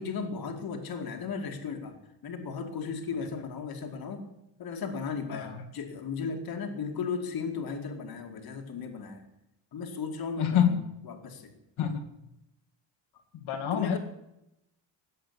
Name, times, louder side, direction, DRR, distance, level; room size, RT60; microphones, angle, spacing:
voice 1, 0.0-2.0 2.2-4.3 4.6-9.2 9.7-10.8 11.0-11.5 13.7-14.0, left 5 dB, 45° left, 4 dB, 2.5 m, -35 dB
voice 2, 5.3-5.6 10.4-10.7 11.8-12.1 13.4-14.0, left 9 dB, 75° left, 2 dB, 2.7 m, -27 dB
18.0 x 7.8 x 10.0 m, 0.86 s
cardioid pair, 150°, 48 cm